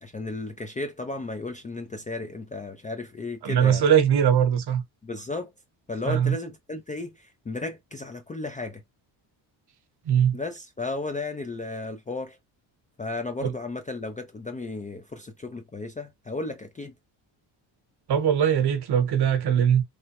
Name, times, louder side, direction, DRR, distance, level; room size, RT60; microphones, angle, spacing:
voice 1, 0.0-3.8 5.0-5.5 5.9-8.8 10.3-12.4 13.0-16.9, left 3 dB, 20° left, 0.3 m, -34 dB
voice 2, 3.4-4.8 6.1-6.3 10.1-10.4 13.4-13.5 18.1-19.8, right 8 dB, 55° right, 0.9 m, -21 dB
3.2 x 2.0 x 2.9 m
cardioid pair, 100°, 47 cm